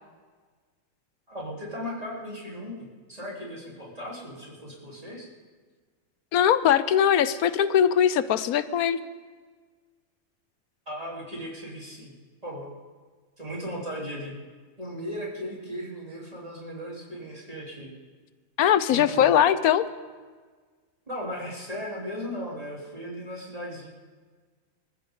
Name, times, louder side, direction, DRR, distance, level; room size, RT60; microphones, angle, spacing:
voice 1, 1.3-5.3 10.9-12.1 12.4-12.7 13.4-14.4 14.8-17.9 18.9-19.3 21.1-23.9, equal, 25° right, -4 dB, 3.8 m, -37 dB
voice 2, 6.3-9.0 18.6-19.9, left 9 dB, 85° left, 14 dB, 1.2 m, -21 dB
25.5 x 14.5 x 3.8 m, 1.5 s
omnidirectional pair, 1.5 m